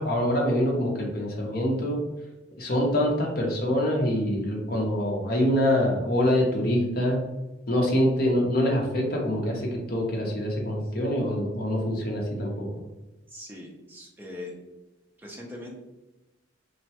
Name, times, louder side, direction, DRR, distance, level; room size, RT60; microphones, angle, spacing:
voice 1, 0.0-2.0 2.6-7.2 7.7-12.7, equal, 50° left, 0 dB, 0.6 m, -25 dB
voice 2, 13.3-14.5 15.2-15.7, left 1 dB, 10° right, -2 dB, 0.5 m, -41 dB
3.1 x 2.1 x 2.8 m, 1.0 s
head